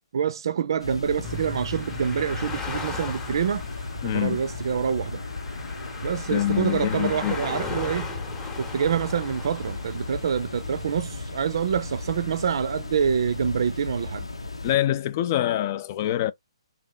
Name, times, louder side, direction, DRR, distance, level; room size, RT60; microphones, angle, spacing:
voice 1, 0.1-3.7 4.0-5.2 6.0-8.1 8.6-14.3, right 7 dB, 55° right, 0.4 m, -26 dB
sound 1, 0.8-14.8, left 3 dB, 80° left, 0.8 m, -36 dB
sound 2, 1.2-12.8, left 4 dB, 10° left, 0.8 m, -38 dB
voice 2, 4.0-4.4 6.3-7.4 14.6-16.3, left 12 dB, 35° left, 0.4 m, -25 dB
2.7 x 2.6 x 3.9 m
figure-of-eight pair, 130°, 3 cm